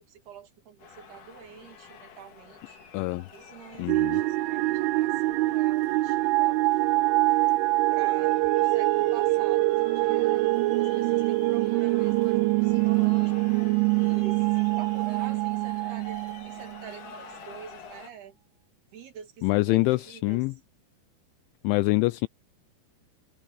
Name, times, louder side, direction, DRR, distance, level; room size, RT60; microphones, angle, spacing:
voice 1, 0.0-2.8 3.3-6.6 6.9-7.2 7.9-13.5 14.0-18.3 18.9-20.4, right 7 dB, 60° right, 3.9 m, -46 dB
sound 1, 0.8-18.1, left 6 dB, 45° left, 3.7 m, -49 dB
voice 2, 2.9-3.3 3.8-4.2 19.4-20.5 21.6-22.3, left 22 dB, 85° left, 2.7 m, -25 dB
sound 2, 3.9-17.0, right 21 dB, 80° right, 2.9 m, -24 dB
omnidirectional pair, 5.8 m